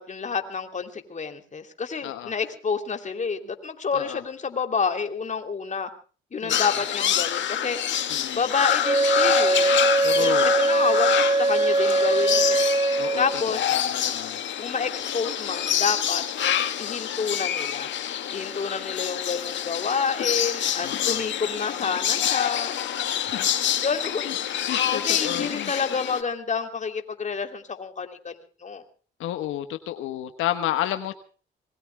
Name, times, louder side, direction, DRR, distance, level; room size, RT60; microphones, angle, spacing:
voice 1, 0.1-5.9 6.3-7.8 8.1-9.7 10.2-13.8 14.6-16.2 16.8-17.9 18.3-22.8 23.8-24.3 24.9-28.8, left 5 dB, 40° left, 6 dB, 3.0 m, -29 dB
sound 1, 6.5-26.2, left 10 dB, 70° left, 2.0 m, -27 dB
voice 2, 7.9-8.4 10.0-10.5 13.0-14.4 20.8-21.2 23.2-23.5 24.2-24.3 24.7-25.7 29.2-31.1, left 12 dB, 85° left, 9 dB, 1.2 m, -31 dB
Wind instrument woodwind instrument, 8.8-13.5, right 2 dB, 30° right, 1.2 m, -22 dB
26.0 x 21.5 x 2.2 m, 0.39 s
cardioid pair, 90°, 20 cm